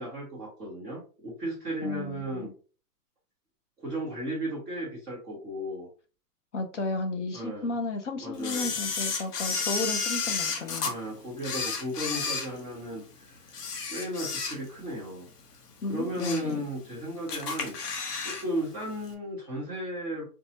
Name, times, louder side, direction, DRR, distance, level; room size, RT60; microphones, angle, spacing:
voice 1, 0.0-2.5 3.8-5.9 7.3-7.7 8.2-8.7 10.8-13.6 13.9-15.3 15.9-17.8 18.2-20.2, right 1 dB, 5° right, -17 dB, 0.5 m, -35 dB
voice 2, 1.8-2.5 6.5-10.9 15.8-16.7, left 3 dB, 50° left, 5 dB, 0.5 m, -33 dB
Camera, 8.4-10.9 11.4-13.0 13.5-14.9 15.2-15.4 15.9-16.5 16.9-17.0 17.3-18.5 18.7-18.8, left 5 dB, 75° left, 1.0 m, -32 dB
4.2 x 2.3 x 2.7 m, 0.37 s
hypercardioid pair, 175°, 47 cm